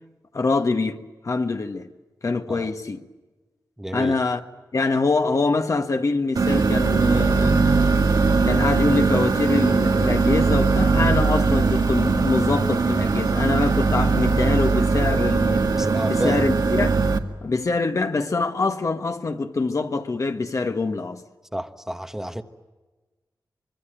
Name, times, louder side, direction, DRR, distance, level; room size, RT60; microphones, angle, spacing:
voice 1, 0.3-1.0 1.2-1.9 2.2-3.0 3.9-4.4 4.7-7.9 8.4-15.7 16.1-17.0 17.4-21.2, left 3 dB, 50° left, 1.6 m, -24 dB
voice 2, 3.8-4.2 15.7-16.4 21.5-22.4, equal, 5° right, 1.2 m, -30 dB
sound 1, 6.4-17.2, right 4 dB, 70° right, 1.9 m, -20 dB
25.0 x 24.5 x 9.1 m
wide cardioid pair, 120°, 7 cm